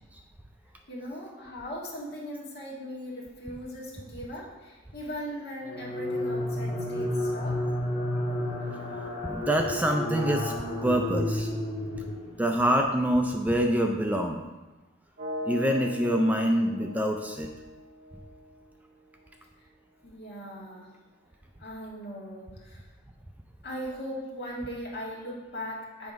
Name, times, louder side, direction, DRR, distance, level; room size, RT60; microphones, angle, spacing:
voice 1, 0.9-7.7 8.7-8.8 20.0-20.9 21.6-22.9 23.6-26.1, equal, 55° left, -3 dB, 1.6 m, -39 dB
sound 1, 5.6-12.6, left 1 dB, 30° left, 1.3 m, -31 dB
voice 2, 9.3-10.5 10.8-11.5 12.4-14.4 15.5-17.5, equal, 10° right, 3 dB, 0.3 m, -25 dB
sound 2, 15.2-19.1, left 1 dB, 45° right, 1.6 m, -39 dB
7.0 x 3.5 x 5.0 m, 1.2 s
head